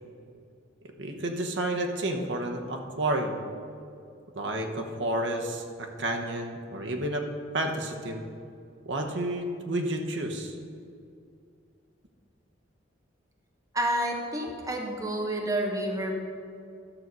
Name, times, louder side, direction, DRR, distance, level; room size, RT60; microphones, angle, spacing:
voice 1, 1.0-3.4 4.3-7.3 7.5-8.2 8.8-10.5, right 1 dB, 65° right, 2 dB, 1.0 m, -30 dB
voice 2, 13.7-16.1, right 1 dB, 20° right, 0 dB, 1.1 m, -29 dB
12.0 x 6.2 x 5.3 m, 2.4 s
head